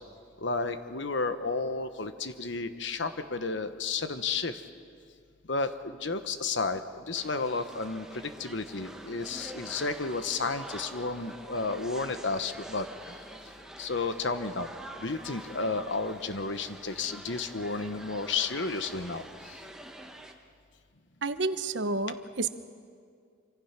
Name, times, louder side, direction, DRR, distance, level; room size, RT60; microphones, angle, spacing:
voice 1, 0.4-4.6 5.5-6.8 7.1-13.1 13.8-14.7 15.0-19.3, left 4 dB, 65° left, 10 dB, 1.1 m, -32 dB
sound 1, 7.1-20.3, right 1 dB, 5° right, 1.3 m, -46 dB
voice 2, 21.2-22.5, right 3 dB, 65° right, 11 dB, 1.0 m, -30 dB
26.0 x 25.5 x 5.9 m, 2.2 s
head